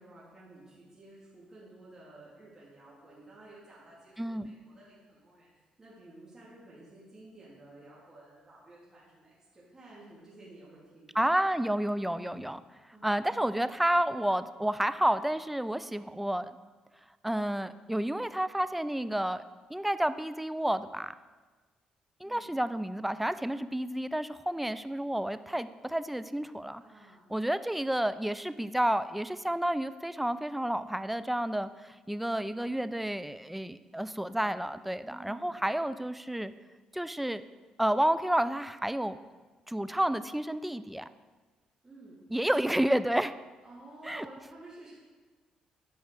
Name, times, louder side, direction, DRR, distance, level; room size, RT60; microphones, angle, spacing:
voice 1, 0.0-5.5 5.8-11.4 12.9-13.3 22.2-22.5 26.8-27.3 33.8-35.6 41.8-42.2 43.6-44.9, right 2 dB, 25° right, -8 dB, 3.0 m, -53 dB
voice 2, 4.2-4.5 11.2-12.6 13.0-16.5 17.2-19.4 19.7-21.1 22.2-26.8 27.3-36.5 36.9-37.4 37.8-39.2 39.7-41.1 42.3-43.3 44.1-44.3, right 1 dB, 5° right, 13 dB, 0.4 m, -30 dB
9.4 x 5.5 x 6.4 m, 1.3 s
cardioid pair, 85°, 2 cm